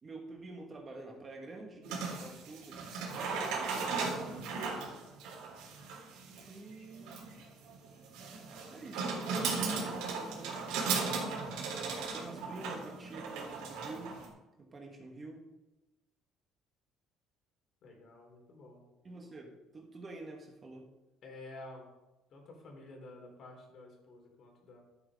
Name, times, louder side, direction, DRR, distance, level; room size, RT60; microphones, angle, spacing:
voice 1, 0.0-3.5 4.7-5.0 6.4-7.2 8.7-11.1 12.1-14.2 14.6-15.5 19.0-20.9, right 2 dB, 25° right, 2 dB, 1.7 m, -48 dB
sound 1, 1.8-14.3, right 4 dB, 85° right, 3.6 m, -37 dB
voice 2, 17.8-18.8 21.2-21.9 22.3-24.8, left 2 dB, 50° left, 1 dB, 3.6 m, -51 dB
13.5 x 8.0 x 3.7 m, 1.0 s
cardioid pair, 140°, 0 cm